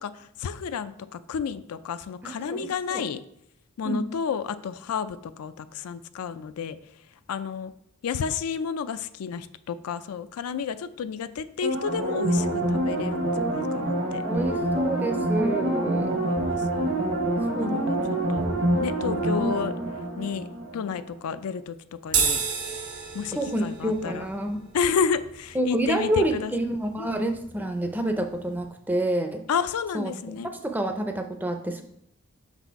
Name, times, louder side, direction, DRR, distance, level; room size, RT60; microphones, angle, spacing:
voice 1, 0.0-3.2 3.8-6.8 7.3-7.7 8.0-14.2 15.1-15.6 16.0-16.9 17.6-18.0 18.3-18.4 18.8-19.7 20.2-20.5 20.7-21.8 22.0-22.4 23.1-24.2 24.7-26.5 27.0-27.1 29.5-30.5, left 6 dB, 90° left, 12 dB, 0.4 m, -31 dB
voice 2, 2.2-3.1 3.8-4.0 14.2-16.1 17.5-17.9 23.3-24.6 25.5-29.4 29.9-30.2 30.5-31.8, right 1 dB, 10° right, 6 dB, 0.4 m, -28 dB
sound 1, 11.6-21.0 21.4-21.5, right 1 dB, 70° right, 1.3 m, -26 dB
sound 2, 22.1-28.6, right 6 dB, 90° right, 1.5 m, -33 dB
6.0 x 4.1 x 4.5 m, 0.73 s
head